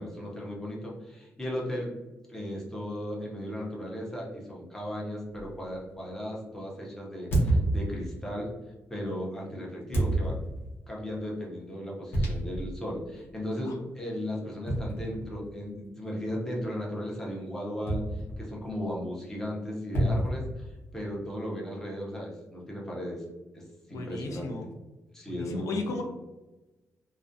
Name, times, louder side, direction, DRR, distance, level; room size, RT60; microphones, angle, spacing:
voice 1, 0.0-1.9 2.3-8.5 8.9-10.4 10.9-23.2 23.5-24.5 25.1-25.9, equal, 10° left, -3 dB, 0.5 m, -36 dB
sound 1, 5.4-5.6 7.3-8.3 9.9-10.8 12.1-12.8 13.2-13.3 14.7-15.6 17.9-18.6 19.9-21.1, right 1 dB, 40° left, 0.8 m, -29 dB
voice 2, 23.9-24.7 25.3-26.0, left 3 dB, 80° left, 3 dB, 0.4 m, -35 dB
2.4 x 2.1 x 2.5 m, 1.1 s
wide cardioid pair, 170°, 5 cm